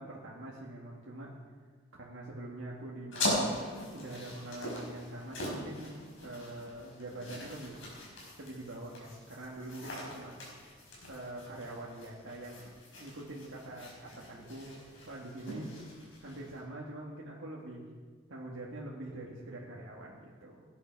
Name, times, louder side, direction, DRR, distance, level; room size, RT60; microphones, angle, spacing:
voice 1, 0.0-1.3 2.0-6.0 6.2-7.8 8.4-10.3 11.1-15.7 16.2-17.9 18.3-20.6, right 1 dB, 80° right, -4 dB, 1.7 m, -44 dB
sound 1, 3.1-16.6, left 1 dB, 75° left, 4.8 m, -41 dB
17.5 x 10.0 x 4.6 m, 1.5 s
head